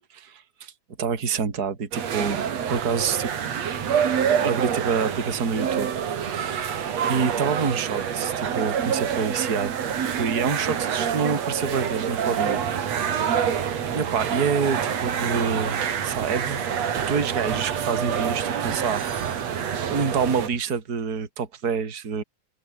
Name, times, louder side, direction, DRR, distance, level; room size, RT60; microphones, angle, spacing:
voice 1, 0.1-0.7 1.0-2.4 2.7-3.3 4.4-5.9 6.3-6.8 7.1-12.6 13.9-16.7 17.1-19.5 19.9-22.2, right 6 dB, 25° right, 3.2 m, -27 dB
sound 1, 1.9-20.5, right 8 dB, 50° right, 3.0 m, -27 dB
open air
omnidirectional pair, 4.2 m